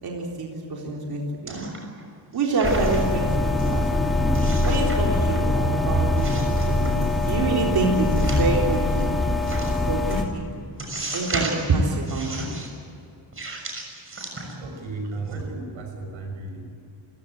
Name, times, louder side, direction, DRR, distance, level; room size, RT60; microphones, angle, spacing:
voice 1, 0.0-1.7 2.3-4.2 4.6-9.1 9.5-9.6 9.9-10.6 11.1-12.5, right 3 dB, 50° right, -1 dB, 3.9 m, -27 dB
sound 1, 1.5-2.0 2.3-3.2 3.6-3.7 4.3-5.0 5.3-5.8 6.1-7.3 8.0-8.8 9.4-9.7 10.1-10.2 10.8-11.7 12.1-12.7 13.3-14.8 15.1-15.3, right 2 dB, 25° right, 6.4 m, -35 dB
sound 2, 2.6-10.2, left 2 dB, ahead, 2.9 m, -23 dB
voice 2, 14.6-16.6, right 3 dB, 90° right, 4 dB, 6.3 m, -34 dB
28.0 x 16.5 x 9.0 m, 2.7 s
cardioid pair, 135°, 46 cm